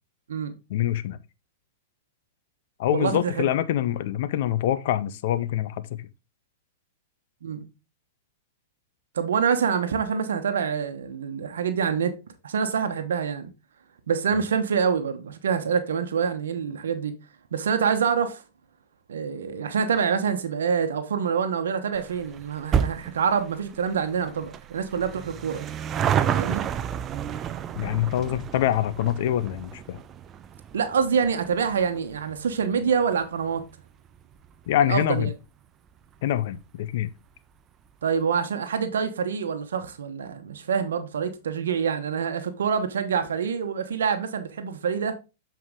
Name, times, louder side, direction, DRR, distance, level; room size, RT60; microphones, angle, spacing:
voice 1, 0.7-1.2 2.8-6.1 14.3-14.4 27.7-30.0 34.7-35.3 36.2-37.1, left 12 dB, 60° left, 0.7 m, -25 dB
voice 2, 2.9-3.5 7.4-7.6 9.1-12.1 12.4-13.5 14.1-17.1 17.5-18.4 19.1-25.7 26.3-26.6 30.7-33.6 34.8-35.3 38.0-45.2, right 6 dB, 85° right, 1.0 m, -26 dB
sound 1, 22.0-34.7 35.0-35.1 36.0-36.1 36.3-36.4 36.6-36.7, right 8 dB, 30° right, 0.5 m, -31 dB
7.8 x 4.6 x 3.7 m
hypercardioid pair, 125°, 0 cm